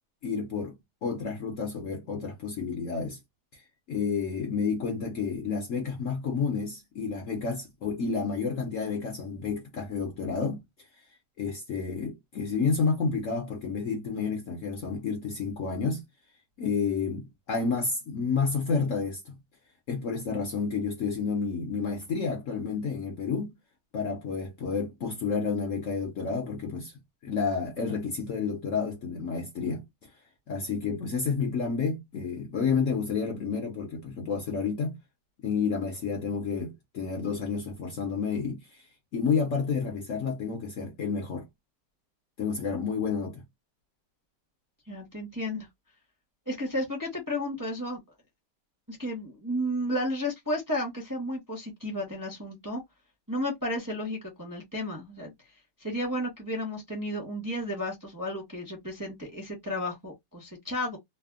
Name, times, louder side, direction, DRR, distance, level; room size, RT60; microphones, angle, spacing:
voice 1, 0.2-3.2 3.5-3.6 3.9-10.6 11.4-16.0 16.6-19.4 19.9-23.6 23.9-26.9 27.2-30.1 30.5-35.0 35.4-38.9 39.1-41.5 42.4-43.4, left 5 dB, 60° left, 0.9 m, -30 dB
voice 2, 44.9-45.7 46.5-48.0 48.9-52.8 53.3-55.3 55.8-61.0, left 1 dB, 15° right, 0.8 m, -33 dB
3.3 x 2.1 x 2.3 m
omnidirectional pair, 1.8 m